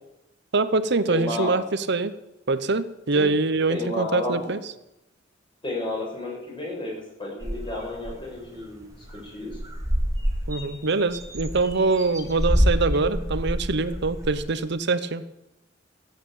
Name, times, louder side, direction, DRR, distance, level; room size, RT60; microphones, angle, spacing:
voice 1, 0.5-2.1 2.5-4.6 10.5-15.3, right 3 dB, 65° right, 13 dB, 0.9 m, -24 dB
voice 2, 1.1-1.5 3.1-3.3 3.7-4.5 5.6-8.8 9.2-9.6, left 2 dB, 25° left, -2 dB, 6.4 m, -31 dB
sound 1, 7.4-8.2 8.6-8.7 8.9-9.2 9.5-14.5, equal, 20° right, 2.4 m, -27 dB
14.5 x 8.7 x 9.0 m, 0.93 s
head